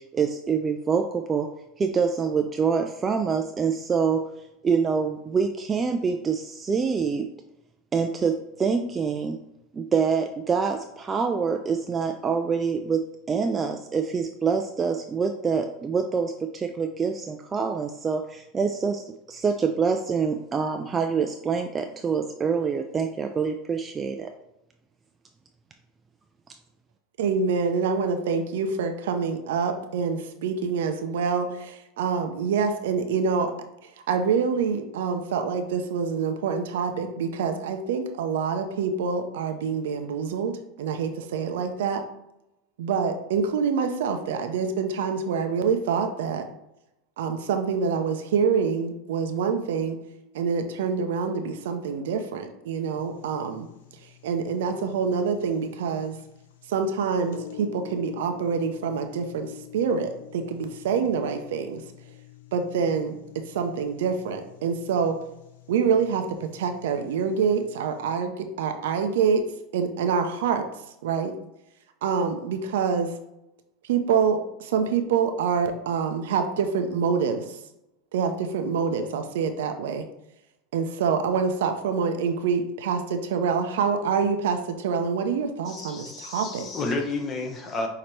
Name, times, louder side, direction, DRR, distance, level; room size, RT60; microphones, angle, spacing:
voice 1, 0.0-1.5 1.8-4.2 4.6-7.3 7.9-9.4 9.7-24.3, right 5 dB, 20° right, 5 dB, 0.3 m, -26 dB
voice 2, 27.2-33.5 33.8-42.0 42.8-46.4 47.2-50.0 50.3-53.7 54.0-56.2 56.7-61.8 62.5-63.2 63.5-65.2 65.7-69.4 69.7-70.6 71.0-71.3 72.0-73.1 73.8-77.6 78.1-80.0 80.7-86.7, right 6 dB, 85° right, 6 dB, 0.6 m, -26 dB
sound 1, 53.0-68.2, left 11 dB, 85° left, 0.5 m, -47 dB
voice 3, 85.7-87.9, left 3 dB, 30° left, 3 dB, 0.9 m, -31 dB
5.9 x 2.8 x 3.2 m, 0.87 s
supercardioid pair, 125°, 0 cm